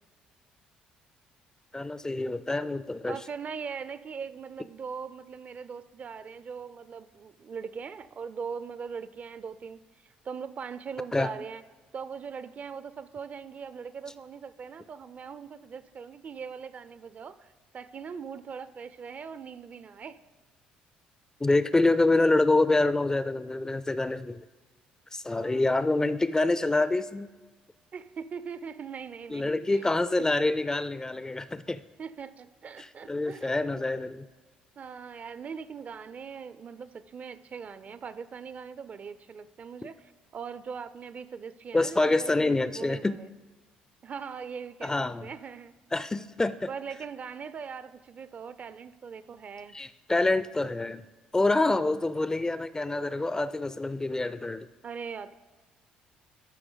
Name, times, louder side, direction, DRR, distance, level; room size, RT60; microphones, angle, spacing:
voice 1, 1.7-3.2 11.1-11.3 21.4-24.4 25.1-27.3 29.3-31.8 33.1-34.3 41.7-43.2 44.8-45.3 45.9-46.7 49.7-51.0 51.3-54.7, left 2 dB, 15° left, 15 dB, 0.4 m, -26 dB
voice 2, 3.1-11.6 11.9-20.2 25.3-25.9 27.9-29.9 32.0-33.5 34.8-43.3 44.0-45.7 46.7-49.8 51.5-52.0 54.8-55.3, right 6 dB, 45° right, 14 dB, 0.5 m, -41 dB
12.5 x 5.7 x 3.9 m, 1.4 s
hypercardioid pair, 55°, 4 cm